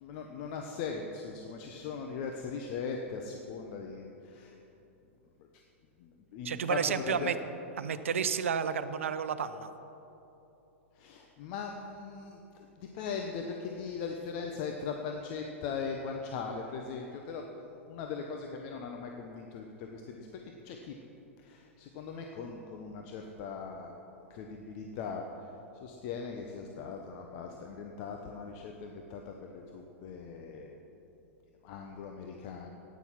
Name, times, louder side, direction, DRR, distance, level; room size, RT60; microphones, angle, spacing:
voice 1, 0.0-4.5 6.0-7.3 10.9-12.4 12.8-20.3 20.6-21.0 21.4-23.9 24.3-25.2 25.8-30.8 31.6-32.7, left 5 dB, 50° left, 3 dB, 1.0 m, -40 dB
voice 2, 6.4-7.4 7.8-9.7, right 7 dB, 75° right, 11 dB, 0.7 m, -31 dB
13.5 x 9.6 x 5.8 m, 3.0 s
hypercardioid pair, 105°, 7 cm